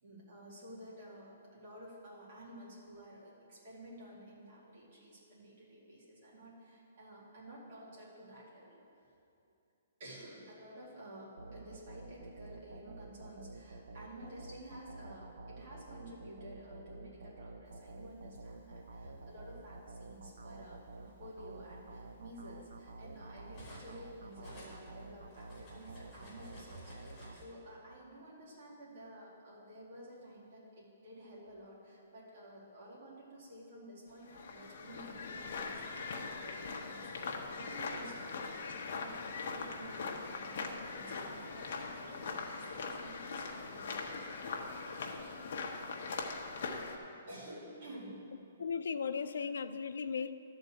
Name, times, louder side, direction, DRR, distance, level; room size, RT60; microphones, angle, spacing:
voice 1, 0.0-8.8 10.0-44.8 47.3-48.3, right 1 dB, 45° right, -5 dB, 2.5 m, -52 dB
sound 1, 11.4-28.0, right 2 dB, 85° right, 0.7 m, -51 dB
Cutlery silverware, 17.9-19.2 20.2-20.4 20.8-24.0 24.3-27.4, equal, 15° left, 2.6 m, -55 dB
sound 2, 34.2-47.0, left 4 dB, 50° left, 0.9 m, -41 dB
voice 2, 48.6-50.3, left 6 dB, 85° left, 11 dB, 0.5 m, -36 dB
12.0 x 4.1 x 7.7 m, 2.7 s
hypercardioid pair, 175°, 0 cm